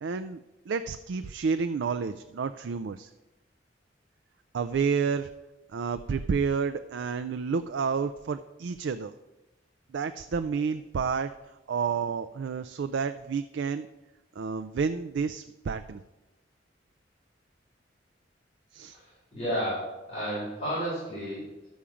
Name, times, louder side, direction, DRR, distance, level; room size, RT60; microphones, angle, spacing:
voice 1, 0.0-3.1 4.5-5.3 5.7-9.1 9.9-11.3 11.7-13.9 14.4-16.0 18.7-19.0, right 5 dB, 75° right, 10 dB, 0.4 m, -30 dB
voice 2, 18.9-21.7, equal, 35° left, -9 dB, 4.3 m, -32 dB
11.5 x 7.2 x 4.9 m, 1.1 s
head